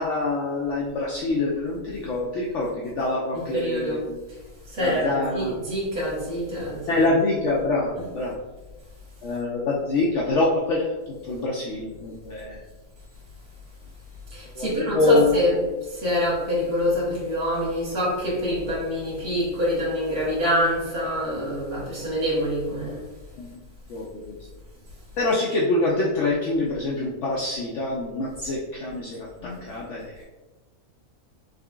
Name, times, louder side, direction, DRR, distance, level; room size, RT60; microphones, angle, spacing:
voice 1, 0.0-4.2 4.8-5.6 6.9-8.3 9.2-10.9 11.2-12.6 14.6-15.4 23.4-23.6 23.9-24.4 25.2-29.3 29.6-30.2, left 2 dB, 65° left, -4 dB, 0.7 m, -25 dB
voice 2, 3.3-4.0 4.7-7.0 14.3-23.0 29.4-29.6, equal, 70° right, -6 dB, 1.9 m, -26 dB
3.7 x 3.4 x 2.3 m, 1.2 s
omnidirectional pair, 1.6 m